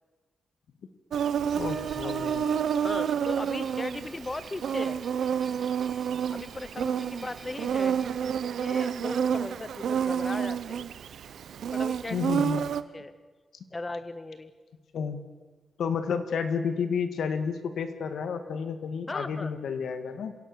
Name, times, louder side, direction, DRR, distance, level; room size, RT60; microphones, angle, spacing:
Insect, 1.1-12.8, right 8 dB, 85° right, 0.8 m, -29 dB
sound 1, 1.5-8.6, right 2 dB, 15° right, 5.9 m, -53 dB
voice 1, 1.6-2.4 12.1-12.6 14.9-15.2 15.8-20.4, left 6 dB, 85° left, 9 dB, 1.9 m, -31 dB
voice 2, 2.8-5.0 6.3-10.9 11.7-12.6 12.9-13.1 13.7-14.5 19.1-19.5, left 2 dB, 20° left, 13 dB, 0.8 m, -38 dB
26.0 x 17.0 x 6.8 m, 1.3 s
wide cardioid pair, 140°, 0 cm